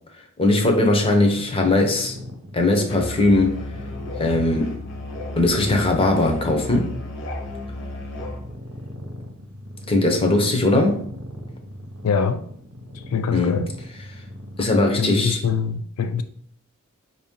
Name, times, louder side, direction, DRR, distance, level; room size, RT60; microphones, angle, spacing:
voice 1, 0.4-2.1 2.5-3.6 4.2-4.7 5.4-7.0 9.9-11.0 13.3-13.5 14.6-15.4, left 2 dB, 25° left, 0.8 m, -19 dB
sound 1, 1.2-15.0, left 1 dB, 65° right, 0.8 m, -40 dB
Musical instrument, 2.9-8.5, left 1 dB, 55° left, 0.8 m, -33 dB
voice 2, 12.0-12.4 12.9-13.7 15.0-16.2, left 6 dB, 75° left, 0.4 m, -24 dB
5.3 x 2.7 x 3.7 m
head